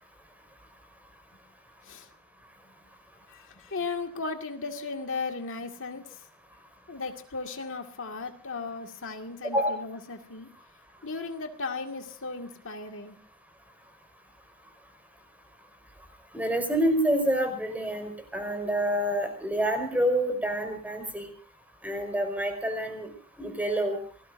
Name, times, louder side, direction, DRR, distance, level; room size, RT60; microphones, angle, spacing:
voice 1, 3.3-6.3 6.9-10.5 11.0-13.2, left 4 dB, 60° left, 4 dB, 2.1 m, -36 dB
voice 2, 16.3-21.3 21.8-23.1 23.4-24.0, right 1 dB, 5° right, 5 dB, 5.0 m, -27 dB
28.0 x 19.0 x 2.6 m, 0.43 s
head